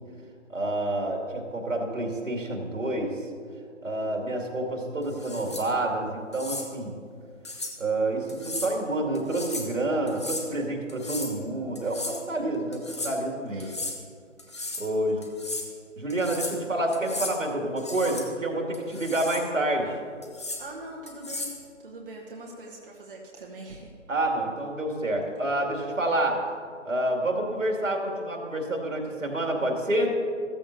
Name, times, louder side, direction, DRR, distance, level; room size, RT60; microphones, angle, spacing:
voice 1, 0.5-3.2 3.8-6.9 7.8-13.7 14.8-15.2 16.0-20.0 24.1-26.4 26.8-30.1, right 1 dB, 75° right, 1 dB, 2.4 m, -28 dB
sound 1, 5.1-5.7 6.3-6.7 7.5-7.8 8.3-8.7 9.2-9.7 10.1-10.5 10.9-11.4 11.8-12.2 12.7-13.1 13.6-14.0 14.4-14.9 15.2-15.7 16.1-16.6 16.9-17.4 17.8-18.3 18.7-19.5 20.2-20.6 21.1-21.6, left 2 dB, 20° left, 0.7 m, -35 dB
voice 2, 13.5-13.9 14.9-15.3 20.6-23.9, right 1 dB, 45° right, -2 dB, 1.3 m, -43 dB
14.5 x 14.0 x 2.7 m, 2.2 s
figure-of-eight pair, 155°, 39 cm